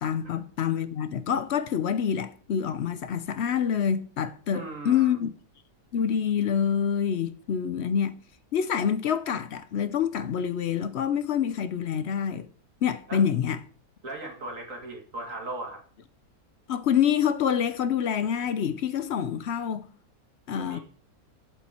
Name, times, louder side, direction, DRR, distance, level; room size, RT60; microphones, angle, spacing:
voice 1, 0.0-5.3 5.9-8.1 8.5-12.5 12.8-13.6 16.7-19.9 20.5-20.8, left 8 dB, 60° left, 0.7 m, -26 dB
voice 2, 4.5-5.2 13.1-13.2 14.0-15.8 20.5-20.8, right 2 dB, 55° right, 2.3 m, -38 dB
8.0 x 7.4 x 4.3 m
omnidirectional pair, 1.7 m